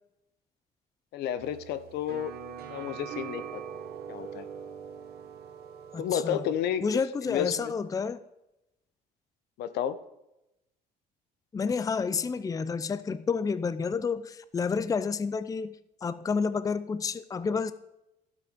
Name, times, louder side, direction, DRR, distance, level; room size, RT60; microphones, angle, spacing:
voice 1, 1.1-2.3 2.7-3.8 4.1-4.5 6.0-6.8 7.2-7.7 9.6-10.0, left 9 dB, 80° left, 0.8 m, -31 dB
sound 1, 1.4-6.7, right 8 dB, 70° right, 1.3 m, -42 dB
voice 2, 5.9-6.4 6.8-8.2 11.5-17.7, left 5 dB, 20° left, 0.5 m, -30 dB
12.0 x 8.0 x 5.1 m
cardioid pair, 110°, 17 cm